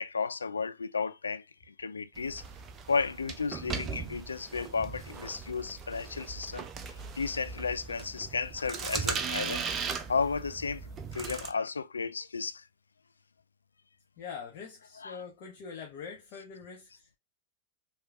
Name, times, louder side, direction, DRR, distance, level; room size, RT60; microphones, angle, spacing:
voice 1, 0.0-2.4 2.9-9.7 10.1-12.7 15.0-15.2, left 5 dB, 75° left, 0.3 m, -33 dB
sound 1, 2.2-11.5, right 6 dB, 25° right, 0.6 m, -38 dB
voice 2, 14.2-17.1, left 6 dB, 45° left, 1.0 m, -44 dB
4.7 x 3.0 x 2.4 m
figure-of-eight pair, 90°, 0 cm